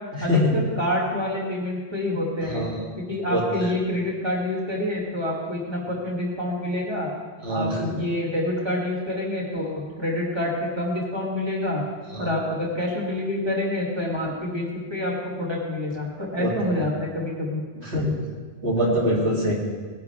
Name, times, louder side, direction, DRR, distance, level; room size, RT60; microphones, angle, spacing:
voice 1, 0.2-7.1 7.5-11.8 12.2-17.6, left 1 dB, 25° right, -4 dB, 2.5 m, -27 dB
voice 2, 2.5-2.9 3.3-3.7 7.4-7.9 12.1-12.3 16.4-16.8 17.8-18.1 18.6-19.5, equal, 85° right, -5 dB, 3.2 m, -24 dB
19.5 x 10.5 x 3.5 m, 1.5 s
omnidirectional pair, 1.1 m